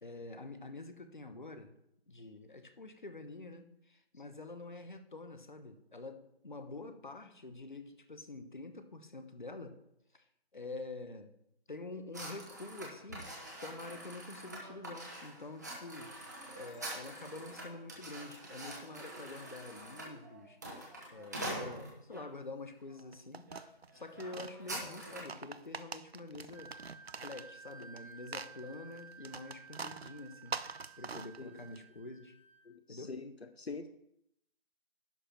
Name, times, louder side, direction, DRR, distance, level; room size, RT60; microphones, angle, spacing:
voice 1, 0.0-1.8 2.1-9.8 10.1-10.2 10.5-11.3 11.7-13.3 13.6-16.1 16.5-20.6 21.1-23.5 23.9-26.7 27.1-30.6 31.0-32.4 32.9-33.1, left 2 dB, 50° left, 8 dB, 1.1 m, -47 dB
sound 1, 12.1-22.3 22.9-23.1 23.5-23.6 23.9-25.4, right 1 dB, 15° right, 1.2 m, -45 dB
sound 2, 23.0-24.5 25.1-28.0 28.3-31.8, right 4 dB, 80° right, 0.6 m, -44 dB
Wind instrument woodwind instrument, 26.5-32.7, right 6 dB, 10° left, 1.1 m, -55 dB
voice 2, 32.7-33.3 33.6-33.9, left 4 dB, 80° left, 10 dB, 0.8 m, -44 dB
11.0 x 5.0 x 5.8 m, 0.78 s
figure-of-eight pair, 165°, 31 cm